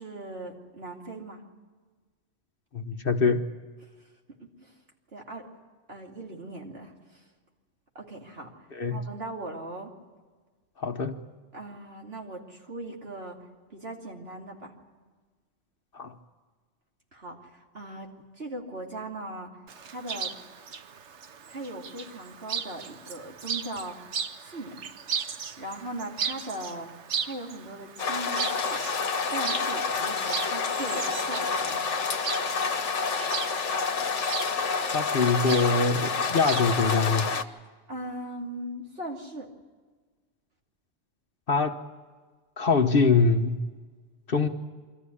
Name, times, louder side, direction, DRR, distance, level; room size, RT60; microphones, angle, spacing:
voice 1, 0.0-1.4 4.4-4.7 5.1-5.5 5.9-7.2 7.9-9.9 11.5-13.4 13.7-14.7 17.1-19.5 19.9-20.3 21.5-24.1 24.4-24.8 25.6-28.8 29.3-31.9 37.9-39.5, right 1 dB, 55° right, 0 dB, 2.9 m, -39 dB
voice 2, 2.7-3.4 8.7-9.0 10.8-11.2 15.9-16.1 34.9-37.3 41.5-41.8 42.6-43.6 44.3-44.5, left 4 dB, 50° left, 7 dB, 1.2 m, -23 dB
Chirp tweet, 19.7-36.8, right 6 dB, 70° right, 1.2 m, -37 dB
sound 1, 28.0-37.4, left 5 dB, 75° left, 1.4 m, -28 dB
24.5 x 14.0 x 9.8 m, 1.4 s
omnidirectional pair, 1.2 m